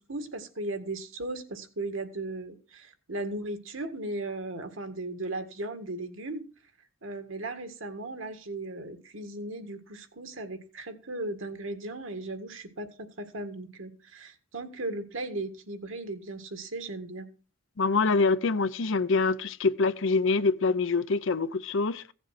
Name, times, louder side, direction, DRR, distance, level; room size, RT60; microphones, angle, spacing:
voice 1, 0.1-6.4 7.0-17.3, right 2 dB, 65° right, 1.8 m, -37 dB
voice 2, 17.8-22.1, left 4 dB, 65° left, 0.7 m, -25 dB
16.0 x 7.3 x 5.9 m
head